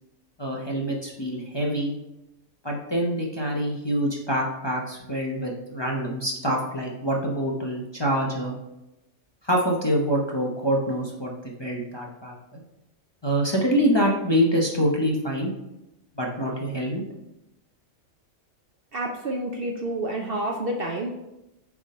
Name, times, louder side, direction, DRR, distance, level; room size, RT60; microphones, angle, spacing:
voice 1, 0.4-2.0 2.6-8.6 9.4-11.3 11.6-12.6 13.2-15.5 16.1-17.0, equal, 25° left, -2 dB, 0.7 m, -25 dB
voice 2, 18.9-21.1, right 1 dB, 55° right, 2 dB, 0.7 m, -29 dB
7.5 x 3.7 x 4.2 m, 0.92 s
omnidirectional pair, 1.4 m